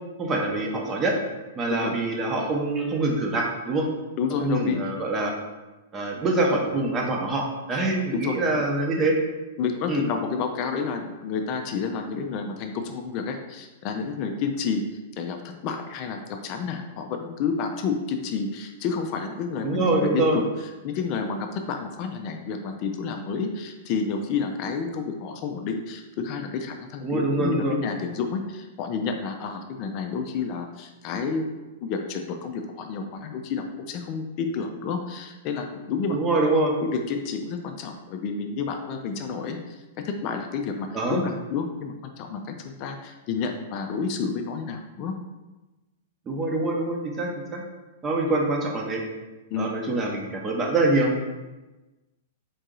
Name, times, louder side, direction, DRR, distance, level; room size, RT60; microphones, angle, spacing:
voice 1, 0.2-1.2 1.6-3.9 4.4-5.3 5.9-9.2 9.9-10.0 19.6-20.4 27.0-27.8 36.1-36.8 40.9-41.2 46.3-47.6 48.0-49.0 49.6-51.2, right 2 dB, 25° right, 0 dB, 0.8 m, -25 dB
voice 2, 4.2-4.8 8.1-8.3 9.6-14.8 15.2-20.4 20.8-36.2 36.8-39.6 40.0-45.1 49.5-49.7, left 5 dB, 40° left, 5 dB, 0.4 m, -30 dB
3.8 x 2.7 x 3.8 m, 1.1 s
figure-of-eight pair, 105°, 0 cm